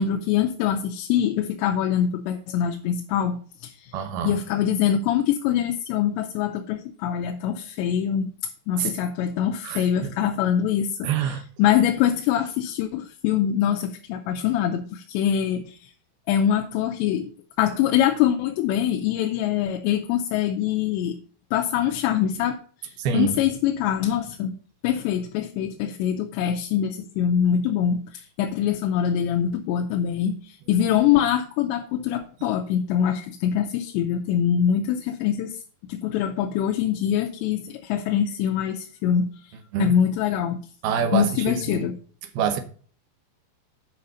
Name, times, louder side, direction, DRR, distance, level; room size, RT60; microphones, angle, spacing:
voice 1, 0.0-3.9 4.2-8.3 8.7-11.1 11.6-15.9 16.3-17.3 17.6-21.2 21.5-22.6 23.1-24.6 24.8-35.6 35.9-39.3 39.8-40.6 41.1-41.9, left 9 dB, 85° left, 3.0 m, -24 dB
voice 2, 3.9-4.4 8.8-8.9 9.6-10.1 11.0-11.4 23.0-23.4 32.4-32.5 39.7-39.9 40.8-41.9 42.3-42.6, right 7 dB, 70° right, 2.6 m, -26 dB
9.1 x 5.8 x 5.4 m
omnidirectional pair, 5.1 m